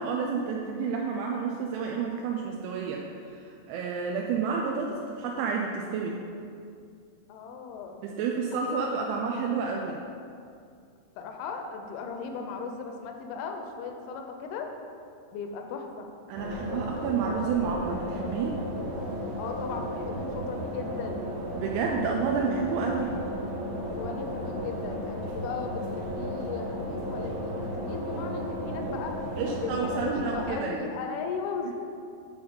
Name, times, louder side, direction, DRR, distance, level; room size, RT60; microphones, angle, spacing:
voice 1, 0.0-6.2 8.0-10.0 16.3-18.6 21.5-23.2 29.4-30.9, right 5 dB, 85° right, 0 dB, 2.8 m, -30 dB
voice 2, 7.3-8.0 8.4-8.5 11.2-14.7 15.3-16.1 19.4-21.3 22.8-23.1 23.9-29.2 29.5-31.7, left 5 dB, 75° left, 4 dB, 2.4 m, -37 dB
sound 1, 16.4-30.5, equal, 70° right, 2.2 m, -34 dB
8.5 x 3.9 x 6.9 m, 2.4 s
omnidirectional pair, 4.8 m